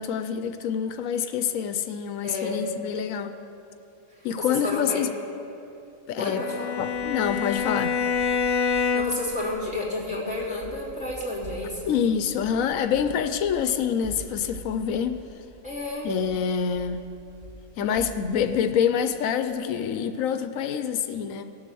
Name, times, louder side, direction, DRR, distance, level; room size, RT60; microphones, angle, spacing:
voice 1, 0.0-3.4 4.2-5.1 6.1-6.4 6.8-8.0 11.8-15.2 16.0-17.1 17.8-21.4, left 7 dB, 85° left, 9 dB, 1.0 m, -26 dB
voice 2, 2.2-2.6 4.2-5.0 6.2-6.7 8.7-11.9 15.6-16.1, left 2 dB, 5° right, -8 dB, 3.4 m, -31 dB
Bowed string instrument, 6.2-9.4, left 6 dB, 30° left, 0.6 m, -26 dB
sound 1, 6.9-19.8, right 1 dB, 35° right, 1.8 m, -46 dB
17.5 x 7.9 x 6.9 m, 2.8 s
omnidirectional pair, 1.4 m